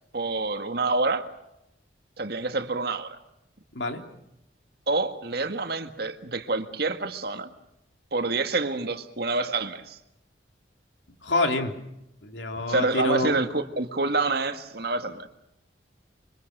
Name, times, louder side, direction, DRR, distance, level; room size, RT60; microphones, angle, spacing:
voice 1, 0.1-1.3 2.2-3.2 4.9-7.5 8.1-10.0 12.7-15.3, right 3 dB, 60° right, 8 dB, 1.8 m, -27 dB
voice 2, 11.2-11.7 12.2-13.4, left 2 dB, 85° left, 5 dB, 3.1 m, -26 dB
26.5 x 25.0 x 6.7 m, 0.83 s
head